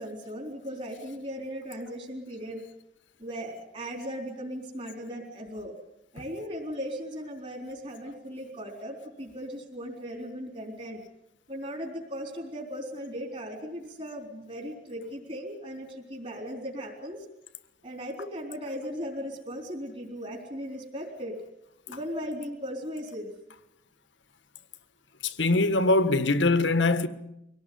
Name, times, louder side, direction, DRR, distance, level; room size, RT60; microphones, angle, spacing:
voice 1, 0.0-2.6 3.2-5.7 6.1-11.0 11.5-17.3 17.8-21.4 21.9-23.3, equal, 35° right, 4.0 m, -37 dB
voice 2, 25.2-27.1, left 2 dB, 80° left, 1.5 m, -22 dB
23.5 x 18.0 x 9.6 m
head